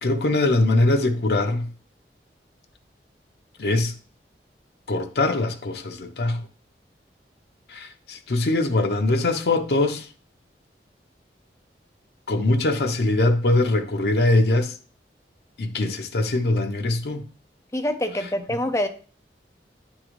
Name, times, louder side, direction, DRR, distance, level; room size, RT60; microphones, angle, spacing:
voice 1, 0.0-1.7 3.6-4.0 4.9-6.4 7.7-10.1 12.3-14.8 15.6-17.2, left 2 dB, 70° left, 0.6 m, -22 dB
voice 2, 17.7-18.9, left 1 dB, 15° left, 0.5 m, -25 dB
8.8 x 3.7 x 3.1 m
head